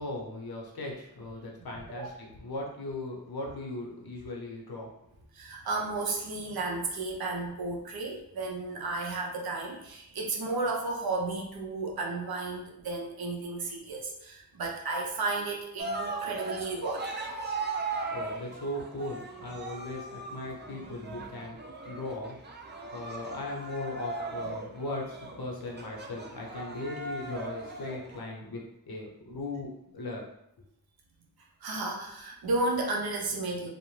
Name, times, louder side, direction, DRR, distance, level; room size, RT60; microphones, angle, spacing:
voice 1, 0.0-4.9 18.1-22.4 22.9-30.3, left 2 dB, 85° left, -1 dB, 0.7 m, -38 dB
voice 2, 5.3-17.1 31.6-33.7, right 3 dB, 90° right, 0 dB, 0.5 m, -33 dB
Cheering, 15.8-28.2, right 3 dB, 30° right, 0.4 m, -38 dB
2.5 x 2.0 x 3.1 m, 0.80 s
wide cardioid pair, 65°, 36 cm